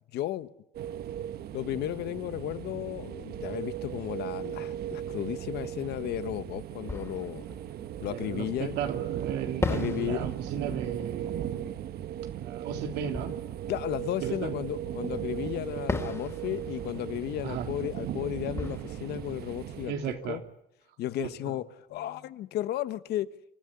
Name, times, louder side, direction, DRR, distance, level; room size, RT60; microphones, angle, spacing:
voice 1, 0.1-0.5 1.5-7.5 8.0-8.8 9.7-10.3 13.7-20.4 21.0-23.3, left 13 dB, 75° left, 14 dB, 1.2 m, -34 dB
sound 1, 0.7-19.9, right 11 dB, 65° right, 1.2 m, -37 dB
Fireworks, 6.2-6.3 6.8-8.8 9.6-15.0 15.9-20.6, left 3 dB, 15° left, 3.5 m, -39 dB
voice 2, 8.1-11.7 12.4-13.3 14.2-14.5 17.4-17.7 19.9-20.4 21.2-21.5, right 8 dB, 85° right, 5 dB, 3.2 m, -35 dB
27.0 x 14.0 x 9.8 m, 0.81 s
cardioid pair, 110°, 17 cm